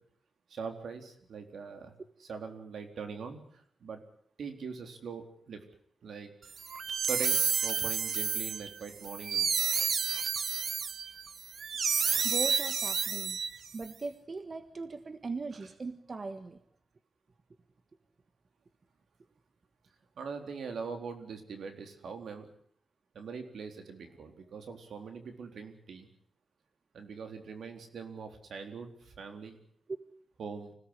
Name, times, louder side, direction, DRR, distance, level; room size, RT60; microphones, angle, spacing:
voice 1, 0.5-1.9 2.2-4.0 4.4-5.6 6.0-6.3 7.1-9.5 15.6-15.7 20.2-22.5 23.1-26.1 26.9-29.6 30.4-30.7, right 5 dB, 80° right, 6 dB, 4.0 m, -42 dB
sound 1, 6.6-13.8, right 6 dB, 65° right, 1.1 m, -30 dB
voice 2, 12.2-13.4 13.7-16.6, right 4 dB, 45° right, 10 dB, 1.5 m, -39 dB
26.0 x 17.5 x 9.9 m, 0.64 s
cardioid pair, 85°, 0 cm